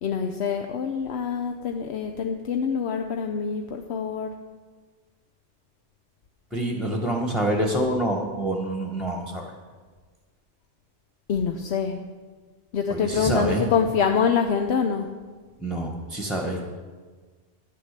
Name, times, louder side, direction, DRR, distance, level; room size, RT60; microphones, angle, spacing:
voice 1, 0.0-4.3 11.3-12.0 12.7-15.1, left 6 dB, 75° left, 5 dB, 1.0 m, -25 dB
voice 2, 6.5-9.5 12.9-13.7 15.6-16.6, right 1 dB, ahead, 1 dB, 1.1 m, -26 dB
11.5 x 8.7 x 6.6 m, 1.4 s
omnidirectional pair, 1.1 m